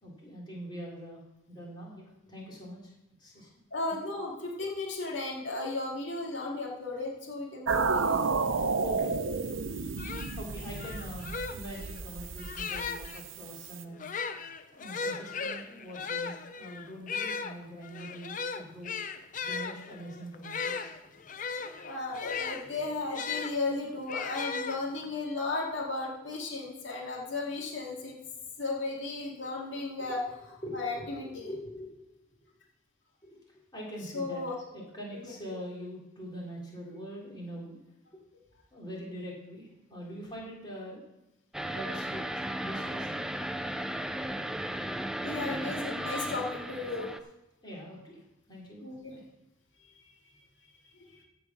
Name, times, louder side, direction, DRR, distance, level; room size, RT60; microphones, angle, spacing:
voice 1, 0.0-1.2 1.5-2.9 3.2-3.5 3.9-4.0 8.5-9.5 10.4-14.1 14.7-18.9 19.4-20.9 30.0-30.1 30.6-32.1 32.4-32.5 33.2-34.4 34.7-37.8 38.1-38.2 38.7-41.0 41.7-42.2 42.5-43.3 47.6-49.2, equal, 20° left, -4 dB, 3.4 m, -43 dB
voice 2, 3.7-8.2 21.8-28.2 28.6-30.2 30.7-31.5 34.1-34.5 35.1-35.3 45.2-47.1 48.8-49.2 51.1-51.2, left 3 dB, 70° left, -2 dB, 2.2 m, -35 dB
sound 1, 7.7-13.8, right 4 dB, 80° right, 0.7 m, -32 dB
sound 2, 9.6-9.7 10.0-13.2 13.9-23.5 24.1-25.2, left 5 dB, 40° left, 0.6 m, -37 dB
sound 3, 41.5-47.2, right 1 dB, 5° right, 0.4 m, -35 dB
15.5 x 5.1 x 6.0 m, 0.95 s
head